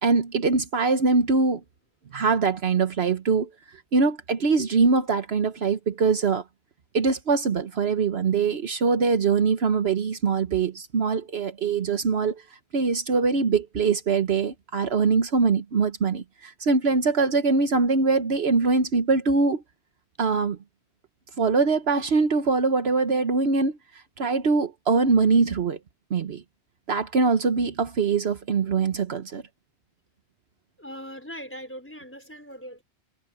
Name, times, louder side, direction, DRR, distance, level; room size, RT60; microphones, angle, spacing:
voice 1, 0.0-1.6 2.1-3.5 3.9-6.4 6.9-12.4 12.7-19.6 20.2-20.6 21.4-25.8 26.1-26.4 26.9-29.4, right 4 dB, 65° right, 1.3 m, -23 dB
voice 2, 30.8-32.8, equal, 10° left, 4.9 m, -40 dB
omnidirectional pair, 1.1 m